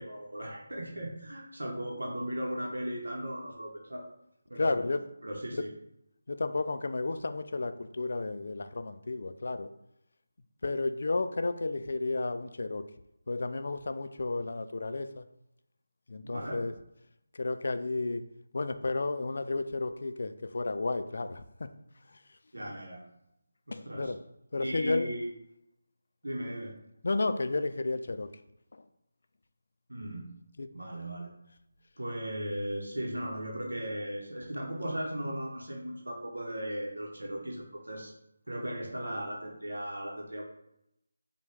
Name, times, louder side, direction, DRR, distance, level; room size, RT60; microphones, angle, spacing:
voice 1, 0.0-4.1 4.5-5.7 16.2-16.6 22.5-23.0 23.7-24.1 24.6-25.3 26.2-26.8 29.9-30.4 30.7-31.3 32.0-38.1 38.5-40.4, equal, 85° right, -1 dB, 0.8 m, -37 dB
voice 2, 4.6-5.0 5.5-5.6 6.3-9.7 10.6-12.9 13.3-15.2 16.1-16.7 17.3-18.3 18.5-21.7 23.7-24.2 24.5-25.1 27.0-28.3 28.7-28.8 30.6-30.7, left 3 dB, 60° left, 10 dB, 0.3 m, -32 dB
5.3 x 2.2 x 3.3 m, 0.82 s
figure-of-eight pair, 165°, 0 cm